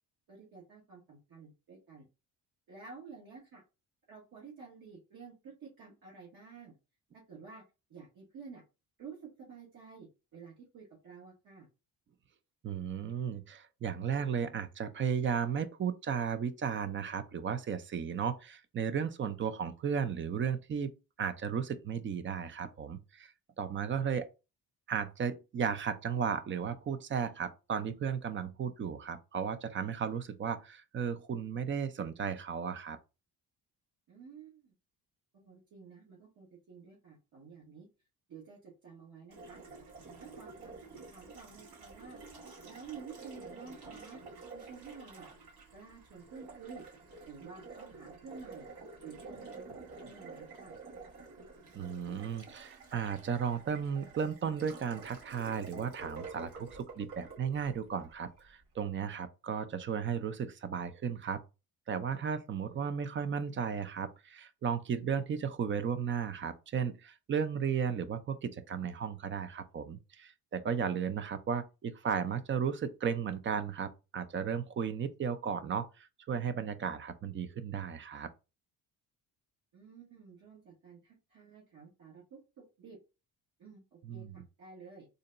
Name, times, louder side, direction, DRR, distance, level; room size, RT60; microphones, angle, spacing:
voice 1, 0.3-2.1 2.7-3.6 4.1-6.7 7.1-7.6 7.9-8.6 9.0-10.1 10.3-11.7 34.1-34.7 35.3-37.9 38.3-39.6 40.2-40.7 41.1-42.2 42.6-44.2 44.5-45.3 45.7-46.8 47.2-48.7 49.0-50.7 62.6-62.9 70.7-70.9 79.7-82.4 82.8-83.0 83.6-85.1, right 5 dB, 65° right, 1.4 m, -51 dB
voice 2, 12.6-20.9 21.2-23.3 23.6-24.3 24.9-33.0 51.7-61.4 61.9-78.3 84.1-84.4, right 7 dB, 35° right, 0.4 m, -35 dB
Water tap faucet, 39.3-58.5, right 4 dB, 85° right, 2.2 m, -49 dB
3.9 x 2.2 x 3.8 m
cardioid pair, 130°, 38 cm